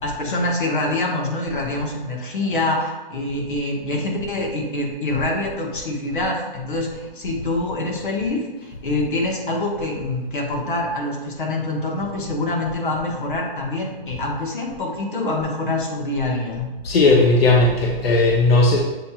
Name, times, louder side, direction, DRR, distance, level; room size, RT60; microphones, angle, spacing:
voice 1, 0.0-16.7, left 2 dB, 60° left, -1 dB, 1.2 m, -25 dB
voice 2, 16.8-18.8, left 2 dB, 85° left, -1 dB, 0.8 m, -16 dB
7.4 x 2.9 x 2.3 m, 1.2 s
hypercardioid pair, 175°, 29 cm